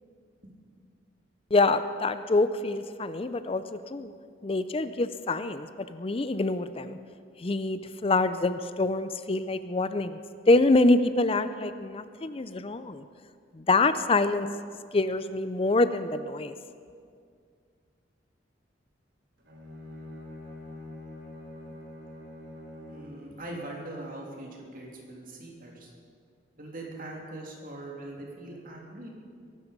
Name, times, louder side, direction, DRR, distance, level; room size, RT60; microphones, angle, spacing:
voice 1, 1.5-4.1 4.4-7.0 7.4-10.2 10.5-13.0 13.5-14.5 14.9-16.5, left 2 dB, 30° left, 12 dB, 0.5 m, -26 dB
Bowed string instrument, 19.4-23.2, left 1 dB, 70° right, 3.5 m, -44 dB
voice 2, 22.9-25.9 26.6-29.1, right 1 dB, 50° right, -1 dB, 3.2 m, -41 dB
22.0 x 12.0 x 5.3 m, 2.2 s
head